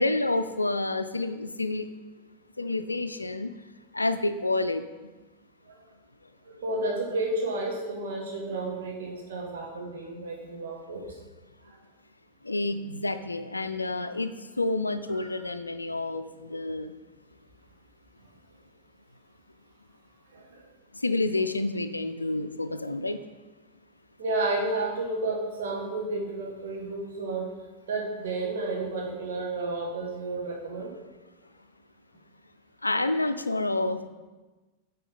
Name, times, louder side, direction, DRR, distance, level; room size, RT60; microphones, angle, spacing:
voice 1, 0.0-1.9 2.6-3.5 3.9-4.8 12.4-16.9 20.9-23.2 32.8-34.1, left 2 dB, 80° left, 10 dB, 0.4 m, -29 dB
voice 2, 6.4-11.2 11.6-11.8 15.2-15.4 20.3-20.7 24.2-27.5 27.9-30.9, right 2 dB, 60° right, -1 dB, 1.9 m, -32 dB
9.1 x 4.1 x 5.3 m, 1.2 s
figure-of-eight pair, 90°, 0 cm